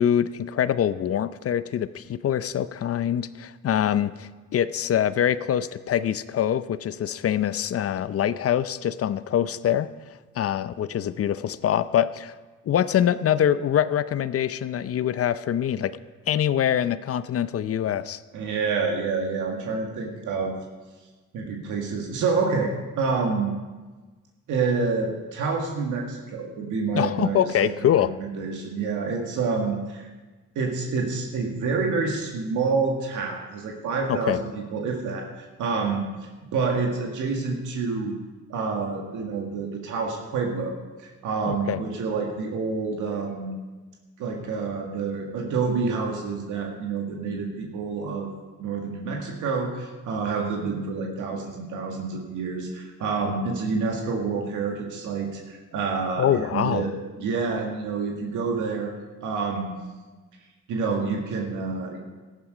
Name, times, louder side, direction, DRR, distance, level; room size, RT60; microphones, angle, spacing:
voice 1, 0.0-9.9 10.4-12.4 12.7-16.0 16.3-18.2 26.9-28.1 34.1-34.4 41.5-41.8 56.2-56.9, left 10 dB, 50° left, 14 dB, 0.6 m, -24 dB
voice 2, 18.3-20.5 21.3-23.5 24.5-30.1 30.6-36.0 36.5-38.1 38.5-43.5 44.2-48.3 48.6-56.9 57.2-59.0 59.2-59.7 60.7-62.0, right 4 dB, 85° right, 1 dB, 1.9 m, -28 dB
14.0 x 11.5 x 5.0 m, 1.3 s
cardioid pair, 90°, 30 cm